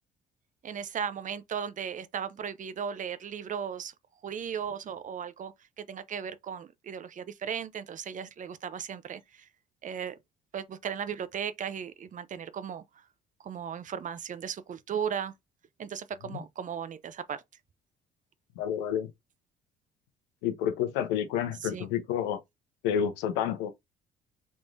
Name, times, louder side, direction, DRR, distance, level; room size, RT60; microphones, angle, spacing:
voice 1, 0.6-3.9 4.2-9.5 9.8-10.2 10.5-12.8 13.4-15.3 15.8-17.4 21.6-21.9, right 8 dB, 45° right, 0.6 m, -36 dB
voice 2, 18.6-19.1 20.4-22.4 22.8-23.7, left 9 dB, 80° left, 0.8 m, -29 dB
3.5 x 3.1 x 2.5 m
hypercardioid pair, 55°, 18 cm